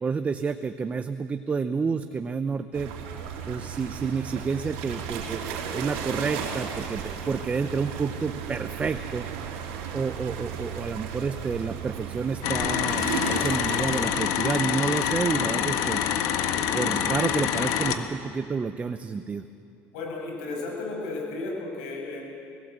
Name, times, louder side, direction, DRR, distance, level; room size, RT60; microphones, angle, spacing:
voice 1, 0.0-2.9 3.5-9.3 9.9-13.0 13.3-16.0 16.7-19.4, right 5 dB, 25° right, 10 dB, 0.7 m, -29 dB
sound 1, 2.7-14.2, right 7 dB, 85° right, 3.1 m, -35 dB
sound 2, 12.4-18.0, left 9 dB, 75° left, 1.4 m, -26 dB
voice 2, 19.9-22.2, left 3 dB, 90° left, -1 dB, 7.0 m, -33 dB
20.0 x 17.0 x 8.1 m, 2.5 s
supercardioid pair, 115°, 6 cm